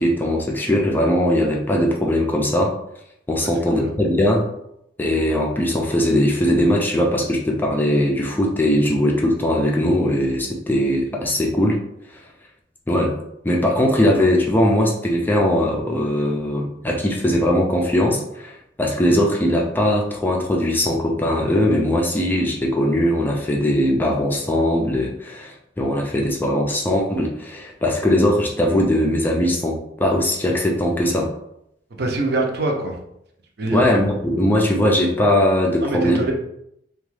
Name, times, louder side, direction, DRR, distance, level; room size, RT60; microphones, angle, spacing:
voice 1, 0.0-2.7 3.3-4.4 5.0-11.8 12.9-13.2 13.4-31.3 33.7-36.2, left 1 dB, 10° left, -1 dB, 0.3 m, -20 dB
voice 2, 32.0-33.0 33.6-33.8 35.8-36.3, right 2 dB, 60° right, 1 dB, 0.6 m, -23 dB
2.9 x 2.2 x 3.1 m, 0.77 s
head